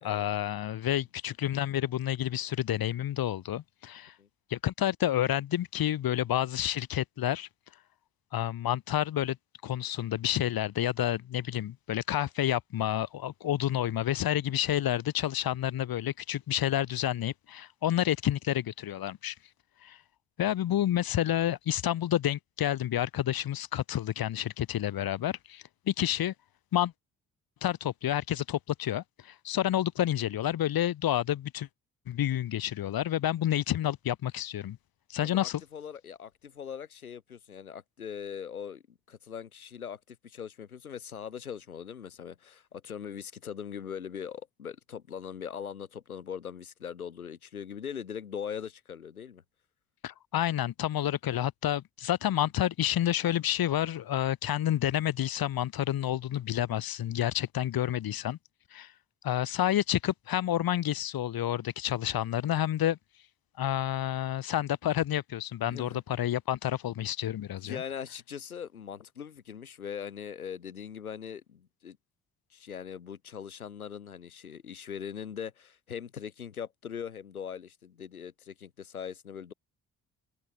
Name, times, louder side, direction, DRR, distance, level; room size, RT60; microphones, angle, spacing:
voice 1, 0.0-4.1 4.5-7.5 8.3-9.4 9.6-19.3 19.8-20.0 20.4-26.3 26.7-26.9 27.6-31.7 32.1-34.8 35.1-35.6 50.0-58.4 58.7-58.9 59.2-63.0 63.6-67.8, left 12 dB, 55° left, 4.3 m, -29 dB
voice 2, 35.2-49.4 65.6-66.0 67.6-72.0 72.5-79.5, left 7 dB, 85° left, 2.8 m, -41 dB
figure-of-eight pair, 40°, 42 cm